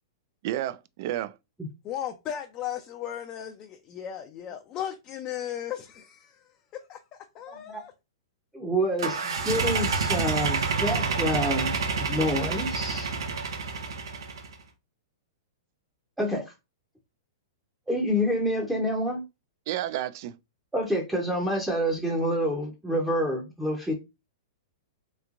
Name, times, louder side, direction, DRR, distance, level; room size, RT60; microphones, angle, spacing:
voice 1, 0.4-1.4 19.7-20.4, right 13 dB, 50° right, 0.3 m, -31 dB
voice 2, 1.8-7.0 7.3-7.9, left 10 dB, 30° left, 0.5 m, -36 dB
voice 3, 7.5-7.8 8.5-13.1 16.2-16.4 17.9-19.2 20.7-23.9, equal, 5° right, 0.7 m, -28 dB
sound 1, 9.0-14.5, right 4 dB, 85° right, 0.8 m, -28 dB
3.3 x 3.0 x 2.4 m
hypercardioid pair, 135°, 2 cm